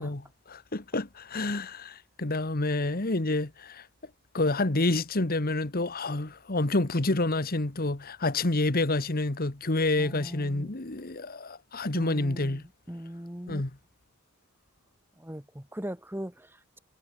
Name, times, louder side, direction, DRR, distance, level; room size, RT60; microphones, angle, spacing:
voice 1, 0.0-3.9 4.3-12.6 13.5-13.7, left 2 dB, 45° left, 1.5 m, -28 dB
voice 2, 10.0-10.7 11.9-13.6 15.2-16.8, equal, 10° right, 1.8 m, -40 dB
head